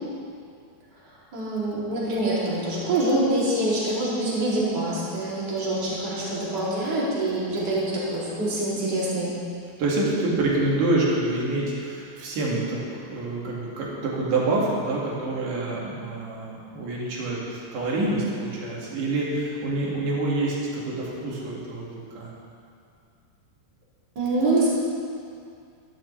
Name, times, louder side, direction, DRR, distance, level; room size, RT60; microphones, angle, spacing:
voice 1, 1.3-9.3 24.1-24.7, right 1 dB, 30° right, -8 dB, 2.6 m, -25 dB
voice 2, 9.8-22.3, right 2 dB, 55° right, -5 dB, 3.1 m, -27 dB
13.0 x 12.0 x 3.2 m, 2.3 s
omnidirectional pair, 4.9 m